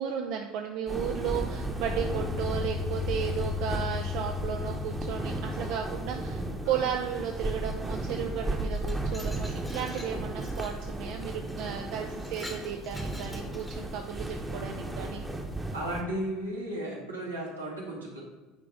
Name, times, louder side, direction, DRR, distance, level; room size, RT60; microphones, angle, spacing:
voice 1, 0.0-15.2, right 8 dB, 55° right, 3 dB, 0.5 m, -34 dB
sound 1, 0.9-16.0, right 2 dB, 10° right, 1.0 m, -35 dB
sound 2, 1.7-6.8, left 7 dB, 35° left, 0.5 m, -36 dB
Glass, 8.6-10.8 11.5-11.6 12.0-14.1, left 1 dB, 10° left, 1.2 m, -47 dB
voice 2, 15.7-18.2, right 1 dB, 85° right, -5 dB, 1.9 m, -35 dB
9.0 x 3.3 x 5.3 m, 1.2 s
figure-of-eight pair, 65°, 0 cm